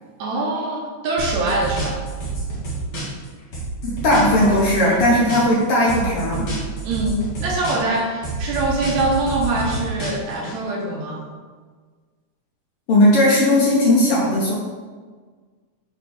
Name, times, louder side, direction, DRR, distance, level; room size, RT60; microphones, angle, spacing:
voice 1, 0.2-2.0 4.9-5.1 6.8-11.3, right 2 dB, 75° right, -1 dB, 2.3 m, -24 dB
sound 1, 1.2-3.3 3.5-5.6 5.9-8.0 8.2-10.5, right 3 dB, 40° left, 2.0 m, -28 dB
voice 2, 3.8-6.5 12.9-14.5, left 1 dB, 60° left, -4 dB, 1.6 m, -17 dB
5.6 x 4.8 x 4.7 m, 1.5 s
omnidirectional pair, 3.5 m